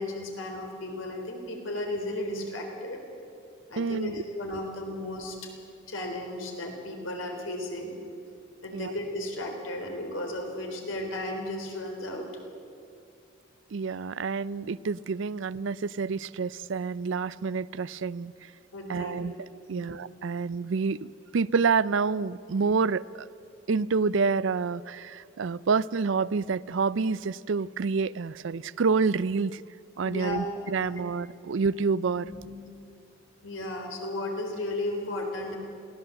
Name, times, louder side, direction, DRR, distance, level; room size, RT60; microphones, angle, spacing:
voice 1, 0.0-3.0 3.7-5.5 5.9-8.0 8.6-12.3 18.7-19.3 19.7-20.0 30.0-30.4 30.8-30.9 32.2-32.5 33.4-35.6, left 1 dB, 80° left, 3 dB, 3.8 m, -34 dB
voice 2, 3.8-4.1 8.7-8.9 13.7-18.3 18.9-19.3 19.7-23.3 23.7-29.6 30.0-32.3, right 5 dB, 70° right, 19 dB, 0.4 m, -28 dB
22.0 x 16.0 x 7.7 m, 2.5 s
head